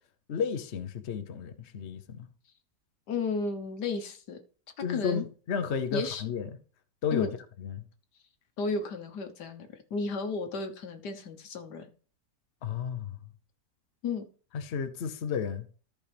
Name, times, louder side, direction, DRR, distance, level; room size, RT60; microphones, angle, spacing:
voice 1, 0.3-2.3 4.8-6.5 7.0-7.3 7.6-7.8 12.6-13.2 14.5-15.7, left 7 dB, 50° left, 1.0 m, -32 dB
voice 2, 3.1-4.4 4.9-5.3 5.9-6.2 7.1-7.3 8.6-11.8 14.0-14.2, left 4 dB, 85° left, 1.7 m, -33 dB
14.0 x 5.1 x 3.4 m
omnidirectional pair, 1.7 m